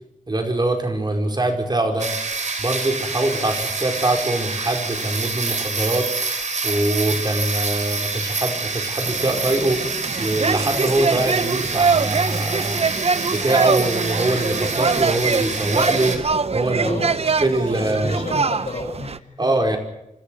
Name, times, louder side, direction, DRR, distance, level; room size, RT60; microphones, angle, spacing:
voice 1, 0.3-2.1 2.6-6.1 6.6-9.8 10.2-12.8 13.3-17.0 17.4-18.2 19.4-19.8, right 1 dB, 35° right, 3 dB, 5.0 m, -23 dB
sound 1, 2.0-16.2, right 4 dB, 70° right, 3.6 m, -27 dB
sound 2, 9.1-19.2, right 4 dB, 55° right, 0.9 m, -23 dB
voice 2, 16.7-17.2 17.7-19.5, left 3 dB, 70° left, 0 dB, 8.0 m, -32 dB
25.5 x 14.0 x 7.8 m, 0.88 s
wide cardioid pair, 75°, 13 cm